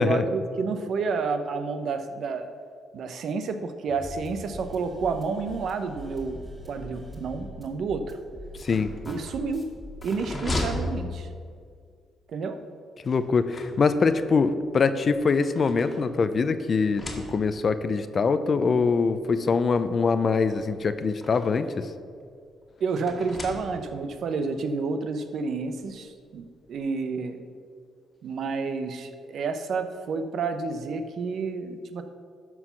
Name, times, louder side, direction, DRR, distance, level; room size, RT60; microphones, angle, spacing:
voice 1, 0.0-2.5 2.9-8.1 9.1-9.7 10.0-11.3 12.3-12.6 22.8-27.4 28.2-32.0, right 4 dB, 65° right, 8 dB, 0.8 m, -30 dB
sound 1, 3.9-10.6, left 1 dB, 5° right, 2.2 m, -43 dB
sound 2, 8.4-11.8 13.0-14.2 15.0-16.4 16.8-17.8 18.7-18.8 19.1-19.2 20.4-21.7 23.0-24.1, left 1 dB, 25° left, 1.6 m, -36 dB
voice 2, 8.6-8.9 13.0-17.0 17.3-21.9, left 4 dB, 45° left, 12 dB, 0.5 m, -23 dB
12.5 x 4.7 x 5.8 m, 2.2 s
cardioid pair, 90°, 0 cm